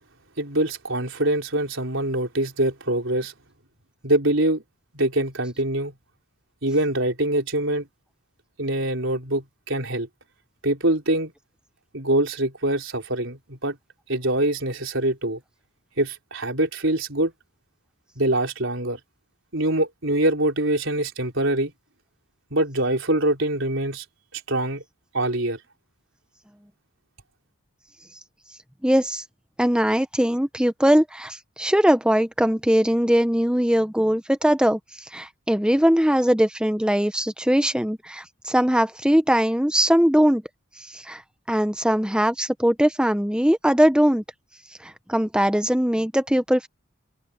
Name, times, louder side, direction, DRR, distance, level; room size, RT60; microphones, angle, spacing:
voice 1, 0.4-3.3 4.0-4.6 4.9-5.9 6.6-7.9 8.6-10.1 10.6-11.3 11.9-13.8 14.1-15.4 16.0-17.3 18.2-19.0 19.5-21.7 22.5-24.0 24.3-24.8 25.1-25.6, right 1 dB, 65° right, 4.4 m, -24 dB
voice 2, 28.8-29.2 29.6-34.8 35.1-40.4 40.9-41.2 41.5-44.2 44.8-46.7, equal, 5° right, 1.0 m, -20 dB
head